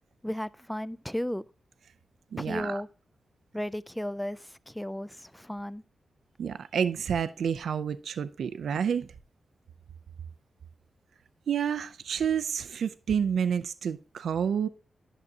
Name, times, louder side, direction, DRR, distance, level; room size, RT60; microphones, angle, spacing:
voice 1, 0.2-1.5 2.4-2.9 3.5-5.8, left 1 dB, 5° left, 0.3 m, -34 dB
voice 2, 2.3-2.8 6.4-9.1 11.5-14.7, right 7 dB, 80° right, 0.4 m, -29 dB
11.0 x 6.5 x 2.7 m
wide cardioid pair, 110°, 0 cm